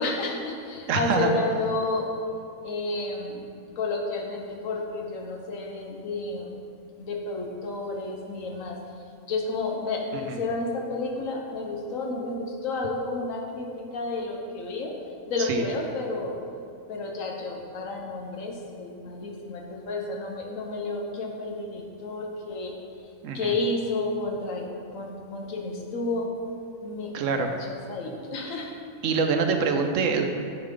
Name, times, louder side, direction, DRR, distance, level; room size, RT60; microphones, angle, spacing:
voice 1, 0.0-2.1 2.6-3.4 3.8-6.5 7.0-8.8 9.3-14.9 15.3-16.4 16.9-22.7 23.3-26.3 26.8-28.7, left 2 dB, 75° left, 1 dB, 1.3 m, -31 dB
voice 2, 0.9-1.3 10.3-10.4 15.5-15.6 23.2-23.5 27.1-27.5 29.0-30.3, right 5 dB, 75° right, 5 dB, 1.0 m, -25 dB
9.6 x 4.8 x 3.7 m, 2.4 s
omnidirectional pair, 1.4 m